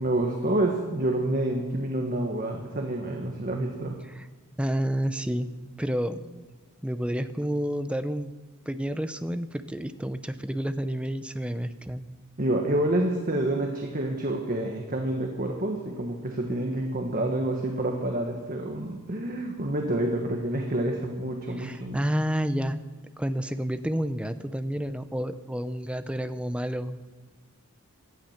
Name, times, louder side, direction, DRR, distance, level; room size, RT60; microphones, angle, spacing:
voice 1, 0.0-4.0 12.4-22.0, right 1 dB, 40° right, 2 dB, 1.5 m, -28 dB
voice 2, 4.6-5.5 5.8-6.5 6.8-8.3 8.7-12.1 21.6-22.8 23.2-27.0, equal, 5° right, 10 dB, 0.6 m, -30 dB
17.5 x 12.5 x 5.8 m, 1.4 s
head